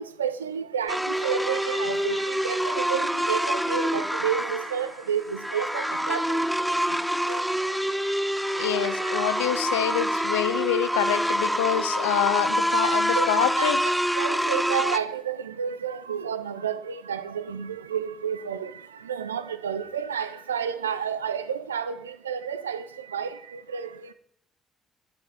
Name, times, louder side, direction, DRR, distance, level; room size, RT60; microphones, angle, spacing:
voice 1, 0.0-9.4 12.8-24.1, right 7 dB, 85° right, 0.3 m, -31 dB
sound 1, 0.9-15.0, equal, ahead, 0.4 m, -26 dB
voice 2, 8.6-13.8, left 11 dB, 80° left, 0.3 m, -26 dB
9.0 x 4.7 x 4.8 m
figure-of-eight pair, 45°, 0 cm